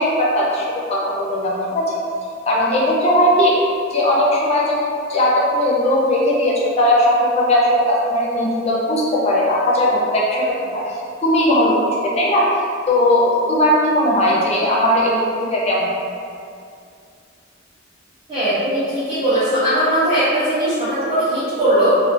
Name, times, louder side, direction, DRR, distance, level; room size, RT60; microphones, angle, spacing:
voice 1, 0.0-1.9 2.5-3.6 3.9-4.8 5.1-10.9 11.2-12.5 12.9-15.2 15.5-15.9, left 1 dB, 35° left, -5 dB, 0.4 m, -18 dB
voice 2, 18.3-21.9, right 1 dB, 30° right, -13 dB, 0.5 m, -19 dB
2.4 x 2.1 x 2.5 m, 2.4 s
head